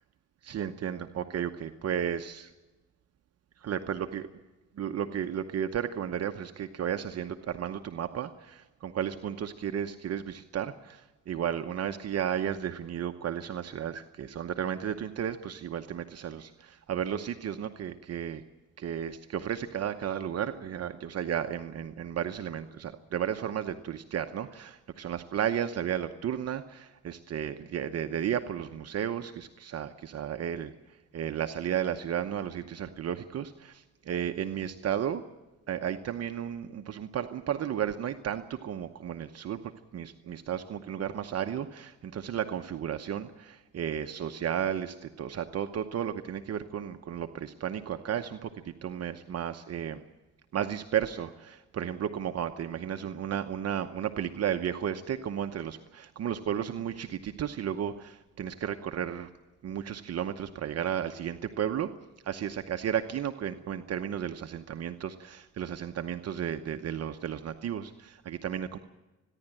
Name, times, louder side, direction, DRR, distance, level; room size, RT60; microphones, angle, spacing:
voice 1, 0.4-2.5 3.6-4.3 4.8-11.0 11.3-18.4 18.8-30.7 31.1-35.2 35.7-39.6 39.9-48.5 48.8-50.0 50.5-59.3 59.6-61.9 62.3-65.1 65.4-68.8, right 9 dB, 55° right, 7 dB, 0.9 m, -33 dB
29.0 x 11.0 x 9.0 m, 1.1 s
cardioid pair, 90°, 30 cm